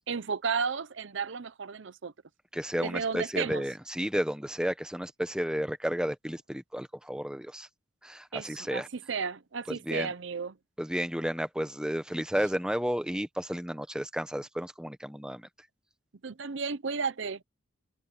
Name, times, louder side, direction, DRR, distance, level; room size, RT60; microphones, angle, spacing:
voice 1, 0.1-2.1 2.8-3.6 8.3-8.8 9.1-10.6 16.2-17.4, right 5 dB, 70° right, 0.7 m, -33 dB
voice 2, 2.5-7.7 8.0-8.9 9.7-10.1 10.8-15.5, equal, 5° right, 1.0 m, -32 dB
head